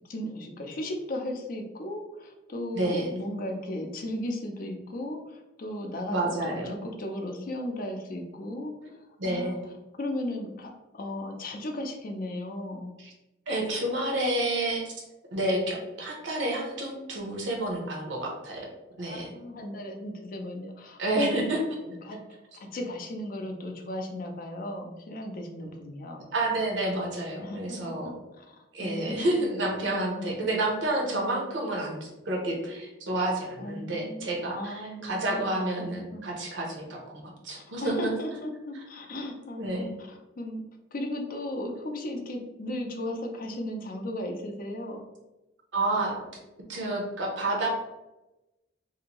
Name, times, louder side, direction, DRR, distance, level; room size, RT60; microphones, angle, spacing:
voice 1, 0.1-9.6 10.0-12.9 19.0-21.3 21.8-22.2 22.5-26.2 27.4-28.5 28.8-29.5 30.2-30.5 33.6-36.3 37.8-40.6 40.9-45.0, left 1 dB, 50° left, 3 dB, 0.5 m, -36 dB
voice 2, 2.7-3.1 6.1-6.7 9.2-9.6 13.0-13.1 13.5-15.0 15.3-18.7 19.0-19.3 21.0-21.6 26.3-28.1 28.7-38.1 39.6-39.9 45.7-46.4 46.7-47.7, right 1 dB, 70° right, 0 dB, 0.8 m, -29 dB
2.7 x 2.6 x 2.9 m, 1.0 s
head